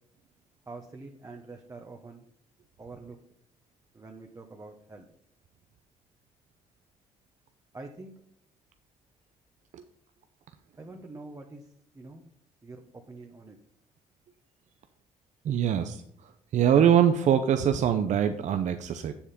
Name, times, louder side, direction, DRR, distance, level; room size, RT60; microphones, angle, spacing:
voice 1, 0.7-2.2 2.8-3.2 3.9-5.1 7.7-8.1 10.8-12.2 12.6-12.8 13.1-13.6, right 3 dB, 25° right, 2 dB, 1.1 m, -45 dB
voice 2, 15.4-16.0 16.5-19.1, right 9 dB, 60° right, 8 dB, 0.6 m, -23 dB
7.4 x 7.1 x 5.2 m, 0.68 s
cardioid pair, 85°, 14 cm